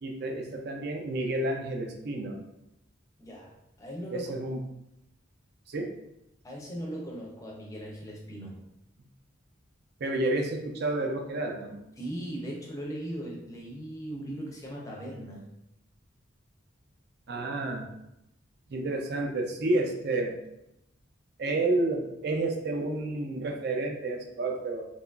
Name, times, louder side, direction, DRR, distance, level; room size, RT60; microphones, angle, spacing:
voice 1, 0.0-2.4 4.1-4.6 5.7-5.9 10.0-11.8 17.3-17.9 18.7-20.4 21.4-24.8, right 2 dB, 55° right, 2 dB, 0.4 m, -30 dB
voice 2, 3.2-4.3 6.4-8.7 12.0-15.5, right 1 dB, 15° left, -2 dB, 0.5 m, -38 dB
2.9 x 2.3 x 2.3 m, 0.83 s
head